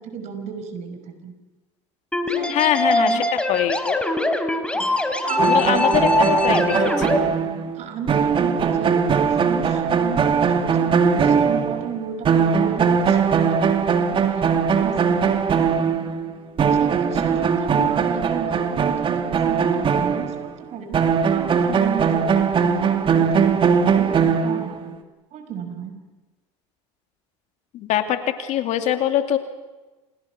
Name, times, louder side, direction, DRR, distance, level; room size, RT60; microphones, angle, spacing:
voice 1, 0.0-1.3 2.3-3.2 4.7-6.1 7.7-13.5 14.1-14.5 14.8-15.2 16.7-21.0 21.3-25.0 25.3-26.0, right 6 dB, 55° right, 8 dB, 5.6 m, -33 dB
sound 1, 2.1-7.2, left 2 dB, 10° left, 3.5 m, -22 dB
voice 2, 2.5-3.2 3.5-4.1 5.4-7.3 17.8-17.9 27.7-29.4, left 11 dB, 60° left, 6 dB, 2.8 m, -23 dB
sound 2, 5.4-12.0 12.2-20.5 20.9-24.9, right 6 dB, 40° right, 2.8 m, -20 dB
28.5 x 28.5 x 6.1 m, 1.2 s
supercardioid pair, 90°, 14 cm